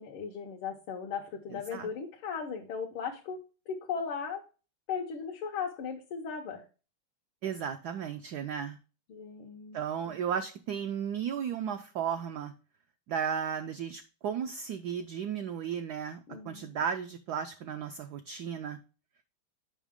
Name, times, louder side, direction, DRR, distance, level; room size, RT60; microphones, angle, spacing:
voice 1, 0.0-3.4 3.7-4.4 4.9-6.6 9.1-9.8 10.1-10.2 16.3-16.8, left 6 dB, 85° left, 0 dB, 1.8 m, -37 dB
voice 2, 7.4-8.8 9.7-12.5 13.1-16.2 16.4-18.8, right 8 dB, 75° right, 7 dB, 0.9 m, -34 dB
7.2 x 5.5 x 3.6 m, 0.35 s
omnidirectional pair, 2.2 m